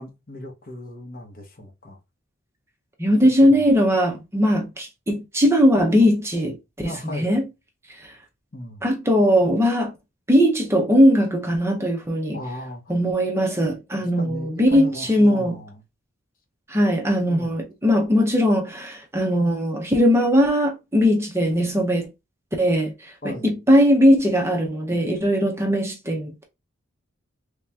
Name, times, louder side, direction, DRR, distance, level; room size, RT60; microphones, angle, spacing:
voice 1, 0.0-2.0 3.4-3.5 6.8-7.4 8.5-8.8 12.3-12.8 14.2-15.7 17.3-17.5 23.2-23.5, left 1 dB, 45° left, 0.9 m, -36 dB
voice 2, 3.0-7.5 7.9-8.1 8.8-9.9 10.3-12.4 12.9-15.6 16.7-22.1 22.6-26.4, equal, 15° right, 0.7 m, -19 dB
3.4 x 2.8 x 3.4 m
head